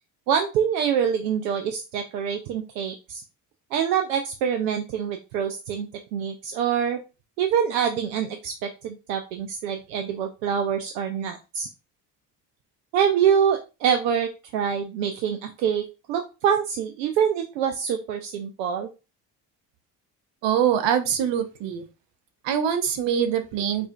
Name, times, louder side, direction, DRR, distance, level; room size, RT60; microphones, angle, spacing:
voice 1, 0.3-3.2 3.7-7.0 7.4-11.7 12.9-18.9, right 8 dB, 85° right, 5 dB, 0.6 m, -25 dB
voice 2, 20.4-21.8 22.4-23.9, right 8 dB, 60° right, 8 dB, 0.9 m, -24 dB
4.7 x 2.5 x 2.3 m, 0.29 s
hypercardioid pair, 55°, 49 cm